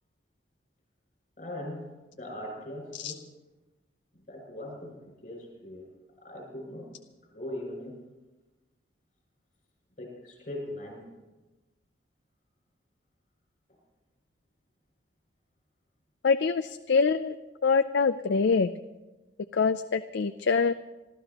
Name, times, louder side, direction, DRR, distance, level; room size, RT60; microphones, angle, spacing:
voice 1, 1.4-1.9 2.1-3.2 4.3-4.9 5.2-5.8 6.2-6.9 7.3-7.9 10.0-11.0, left 1 dB, 40° left, -2 dB, 6.9 m, -39 dB
voice 2, 16.2-17.4 17.6-18.7 19.5-20.7, left 5 dB, 70° left, 9 dB, 0.4 m, -24 dB
27.0 x 13.5 x 3.0 m, 1.1 s
head